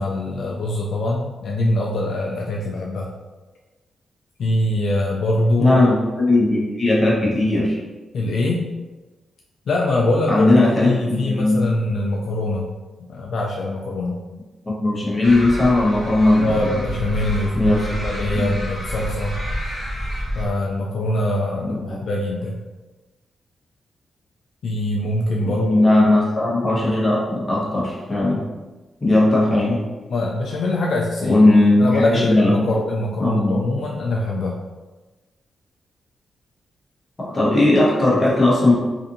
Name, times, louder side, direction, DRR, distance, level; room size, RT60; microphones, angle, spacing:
voice 1, 0.0-3.1 4.4-5.8 8.1-8.7 9.7-10.5 10.8-12.7 13.1-14.2 16.4-19.4 20.3-22.6 24.6-25.9 30.1-31.4 31.8-34.6, left 1 dB, 70° left, -2 dB, 0.3 m, -23 dB
voice 2, 5.6-7.8 10.3-11.6 14.6-16.5 17.5-17.9 18.3-18.5 21.6-22.1 25.4-28.4 29.0-29.8 31.2-32.7 33.2-33.6 37.2-38.7, left 2 dB, 25° left, -6 dB, 0.9 m, -17 dB
sound 1, 15.2-20.5, equal, 5° right, 1.3 m, -28 dB
2.6 x 2.5 x 2.6 m, 1.2 s
cardioid pair, 110°, 0 cm